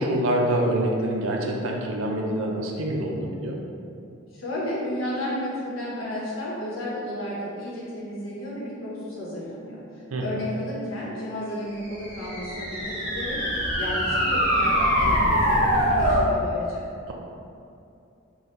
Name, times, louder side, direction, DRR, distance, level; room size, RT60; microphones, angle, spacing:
voice 1, 0.0-3.6 10.1-10.4, right 1 dB, 90° right, 0 dB, 0.6 m, -26 dB
voice 2, 4.3-16.8, left 1 dB, 90° left, -6 dB, 1.1 m, -33 dB
sound 1, 11.9-16.3, equal, 25° right, 1.3 m, -23 dB
4.1 x 2.3 x 3.8 m, 2.6 s
head